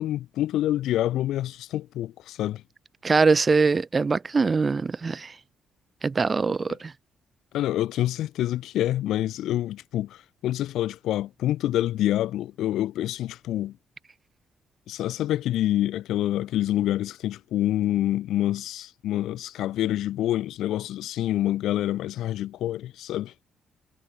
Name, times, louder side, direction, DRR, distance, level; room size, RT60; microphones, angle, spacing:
voice 1, 0.0-2.6 6.7-6.8 7.5-13.8 14.9-23.3, left 13 dB, 80° left, 0.8 m, -27 dB
voice 2, 3.0-5.3 6.0-6.9, right 4 dB, 30° right, 0.5 m, -22 dB
cardioid pair, 90°, 0 cm